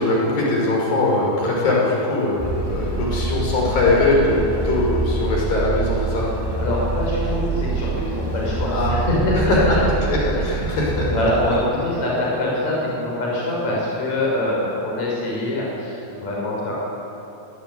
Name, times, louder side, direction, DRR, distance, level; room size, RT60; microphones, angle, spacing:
voice 1, 0.0-6.3 8.7-8.9 9.5-11.1, left 2 dB, 90° left, -3 dB, 7.6 m, -21 dB
sound 1, 2.4-11.7, right 3 dB, 20° right, 0.6 m, -26 dB
voice 2, 6.4-9.7 10.3-10.7 11.1-16.7, left 1 dB, 50° left, -4 dB, 7.5 m, -24 dB
24.5 x 20.0 x 9.5 m, 3.0 s
omnidirectional pair, 4.0 m